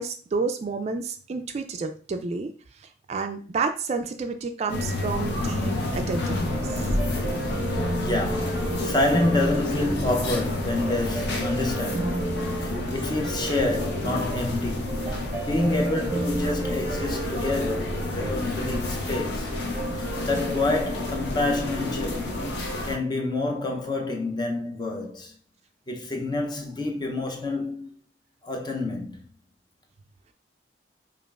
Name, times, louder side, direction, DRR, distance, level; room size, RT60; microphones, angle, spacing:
voice 1, 0.0-2.5 3.1-6.8, right 4 dB, 35° right, 0.3 m, -30 dB
sound 1, 4.7-23.0, left 2 dB, 70° left, 0.8 m, -30 dB
sound 2, 5.7-22.4, right 2 dB, 15° right, 0.7 m, -34 dB
voice 2, 7.9-15.0 15.4-19.5 19.9-22.3 22.8-25.4 25.9-28.0 28.4-29.3, left 2 dB, 25° left, 0.6 m, -28 dB
5.1 x 2.4 x 2.3 m
head